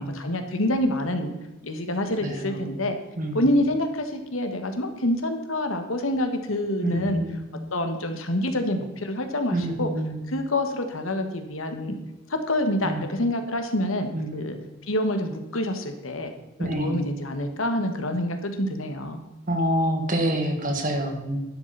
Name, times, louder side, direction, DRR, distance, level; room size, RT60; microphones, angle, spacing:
voice 1, 0.0-1.3 1.6-3.0 3.3-7.2 7.7-9.9 10.3-11.9 12.3-14.6 14.9-16.3 16.6-19.2, left 1 dB, 80° left, 6 dB, 1.6 m, -27 dB
voice 2, 2.2-2.6 3.2-3.5 6.8-7.5 9.5-10.2 12.8-13.0 14.1-14.6 16.6-17.1 19.5-21.4, equal, 40° right, 4 dB, 1.9 m, -27 dB
11.5 x 11.0 x 4.1 m, 1.1 s
head